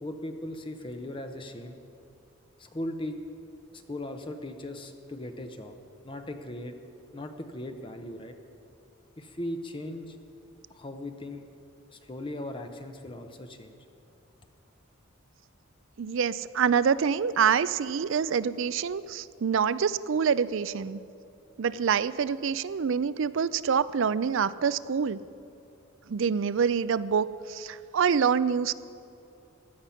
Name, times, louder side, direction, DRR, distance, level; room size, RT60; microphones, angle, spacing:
voice 1, 0.0-1.8 2.6-3.2 3.7-5.7 6.0-6.8 7.1-8.4 9.2-10.2 10.7-11.4 11.9-13.8, left 1 dB, 25° left, 6 dB, 0.7 m, -38 dB
voice 2, 16.0-21.0 21.6-25.2 26.1-28.7, right 6 dB, 60° right, 17 dB, 0.4 m, -26 dB
16.0 x 11.5 x 5.7 m, 2.8 s
head